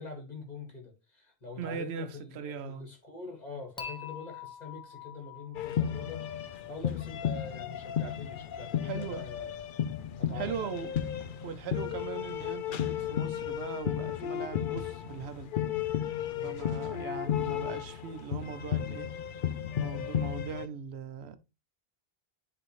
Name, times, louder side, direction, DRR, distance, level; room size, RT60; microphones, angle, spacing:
voice 1, 0.0-9.6 10.2-10.8 16.3-16.6, left 3 dB, 40° left, 2.0 m, -44 dB
voice 2, 1.6-2.9 8.8-9.2 10.3-10.9 11.4-15.5 16.4-19.1 19.8-21.4, right 7 dB, 85° right, 0.9 m, -39 dB
Dishes pots and pans / Chink clink, 3.8-6.9, left 6 dB, 5° left, 0.9 m, -45 dB
sound 1, 5.5-20.7, left 9 dB, 60° left, 0.7 m, -34 dB
sound 2, 8.0-17.0, left 3 dB, 85° left, 1.3 m, -55 dB
10.5 x 3.5 x 3.1 m
omnidirectional pair, 1.1 m